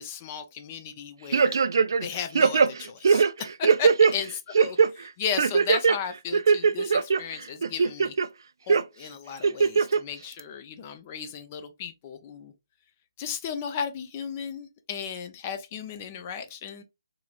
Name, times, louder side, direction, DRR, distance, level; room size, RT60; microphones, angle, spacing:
voice 1, 0.0-1.6 2.0-8.2 8.7-12.5 13.2-16.8, left 7 dB, 25° left, 0.5 m, -35 dB
sound 1, 1.3-2.1 2.4-4.1 4.5-4.9 5.4-6.0 6.3-7.2 7.6-8.3 8.7-8.8 9.4-10.0 10.4-10.5, right 5 dB, 60° right, 0.3 m, -20 dB
3.9 x 2.9 x 2.4 m
figure-of-eight pair, 155°, 2 cm